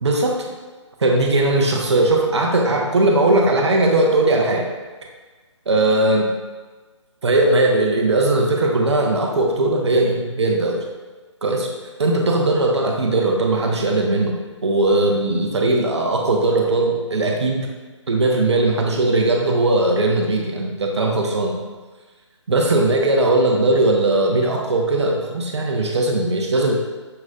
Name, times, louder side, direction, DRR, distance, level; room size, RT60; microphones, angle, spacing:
voice 1, 0.0-0.4 1.0-4.7 5.7-6.3 7.2-10.8 11.4-11.7 12.0-14.4 14.6-17.7 18.1-21.6 22.5-26.7, right 2 dB, 60° right, 1 dB, 0.9 m, -19 dB
6.6 x 3.0 x 2.4 m, 1.3 s
figure-of-eight pair, 155°, 16 cm